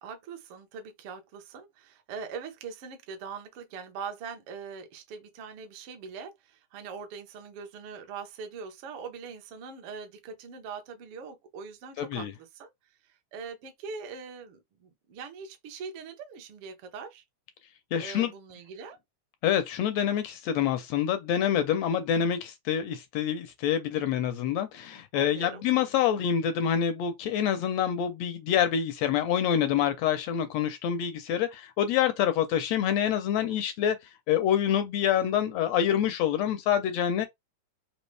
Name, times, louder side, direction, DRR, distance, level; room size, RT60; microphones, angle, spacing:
voice 1, 0.0-12.7 13.0-17.2 18.0-19.0 25.1-25.6, right 5 dB, 60° right, 1.6 m, -42 dB
voice 2, 12.0-12.3 17.9-18.3 19.4-34.0 34.3-37.3, left 9 dB, 80° left, 1.5 m, -26 dB
5.2 x 2.7 x 3.2 m
omnidirectional pair, 3.5 m